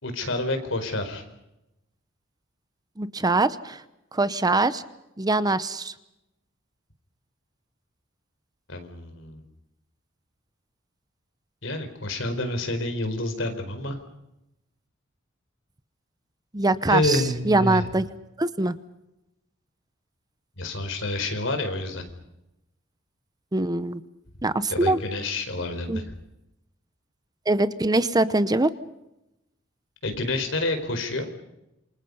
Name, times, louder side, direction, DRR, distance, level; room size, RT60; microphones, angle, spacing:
voice 1, 0.0-1.2 8.7-9.4 11.6-14.0 16.9-17.9 20.6-22.0 24.7-26.0 30.0-31.3, left 2 dB, 70° left, 7 dB, 4.5 m, -28 dB
voice 2, 3.0-3.8 4.1-4.8 5.2-5.9 16.5-18.1 18.4-18.7 23.5-24.0 24.4-25.0 25.9-26.0 27.5-28.7, right 2 dB, 20° right, 14 dB, 0.8 m, -23 dB
28.0 x 25.0 x 5.5 m, 0.89 s
head